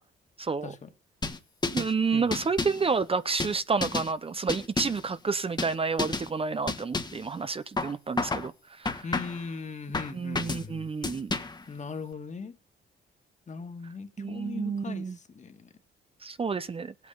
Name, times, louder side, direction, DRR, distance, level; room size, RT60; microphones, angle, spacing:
voice 1, 0.4-0.7 1.7-8.5 8.8-9.0 10.1-11.3 14.2-15.2 16.2-16.9, right 4 dB, 30° right, 0.7 m, -30 dB
sound 1, 1.2-1.9 2.3-2.9 3.4-4.1 4.5-5.1 5.6-5.7 6.0-6.3 6.7-7.2 7.8-8.5 8.9-9.5 9.9-10.7 11.0-11.6, left 3 dB, 20° left, 1.5 m, -31 dB
voice 2, 2.1-2.5 9.0-10.9 11.7-12.6 13.5-15.7, left 5 dB, 35° left, 2.0 m, -39 dB
17.5 x 8.4 x 6.7 m
cardioid pair, 90°, 20 cm